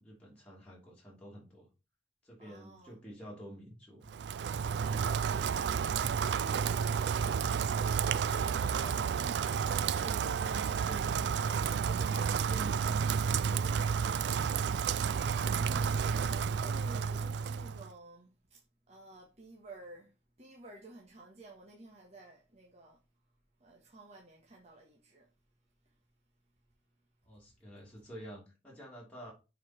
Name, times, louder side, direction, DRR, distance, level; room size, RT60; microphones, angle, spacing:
voice 1, 0.0-1.7 2.2-4.1 6.8-7.0 8.4-9.1 9.6-14.5 27.2-29.3, equal, 5° left, 2.7 m, -49 dB
voice 2, 2.4-3.1 15.4-18.6 18.9-20.1 20.4-23.0 23.6-25.3 25.8-25.9, right 2 dB, 40° right, 1.5 m, -53 dB
Rain, 4.1-17.9, right 6 dB, 65° right, 0.3 m, -31 dB
7.2 x 4.7 x 4.3 m
head